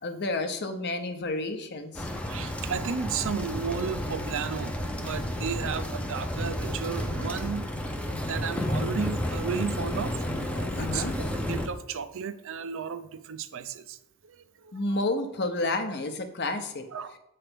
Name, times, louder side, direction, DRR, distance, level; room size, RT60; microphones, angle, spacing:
voice 1, 0.0-2.1 10.8-11.1 14.7-16.8, left 2 dB, 50° left, 7 dB, 0.8 m, -30 dB
sound 1, 1.9-11.7, left 1 dB, 5° left, 0.5 m, -31 dB
voice 2, 2.3-7.6 8.1-10.2 10.4-14.0 14.2-14.8 16.9-17.1, right 6 dB, 65° right, 11 dB, 0.5 m, -34 dB
7.8 x 3.3 x 6.0 m, 0.82 s
head